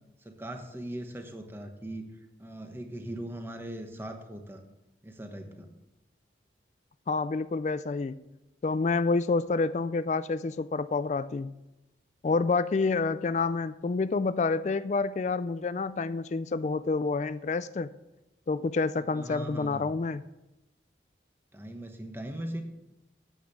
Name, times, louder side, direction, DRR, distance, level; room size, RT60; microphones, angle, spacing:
voice 1, 0.2-4.6 5.0-5.7 19.0-19.9 21.5-22.6, right 1 dB, 15° right, 5 dB, 1.1 m, -40 dB
voice 2, 7.1-8.2 8.6-11.5 12.2-17.9 18.5-20.2, left 4 dB, 40° left, 15 dB, 0.3 m, -28 dB
9.4 x 8.1 x 6.9 m, 0.97 s
head